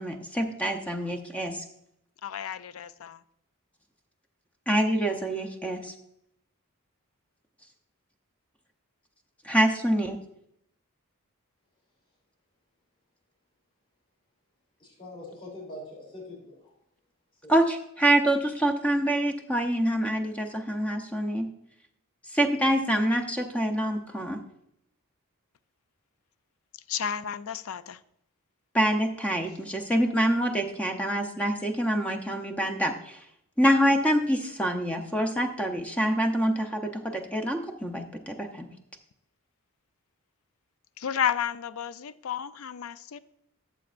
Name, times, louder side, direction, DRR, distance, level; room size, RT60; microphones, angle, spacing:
voice 1, 0.0-1.6 4.7-5.9 9.4-10.2 17.5-21.5 22.3-24.4 28.7-33.2 33.6-38.7, right 1 dB, 5° left, 0.7 m, -26 dB
voice 2, 2.2-3.2 26.9-28.0 41.0-43.2, left 8 dB, 65° left, 0.4 m, -32 dB
voice 3, 14.8-16.7 17.4-17.5, left 1 dB, 25° left, 3.2 m, -43 dB
13.0 x 7.1 x 2.5 m
head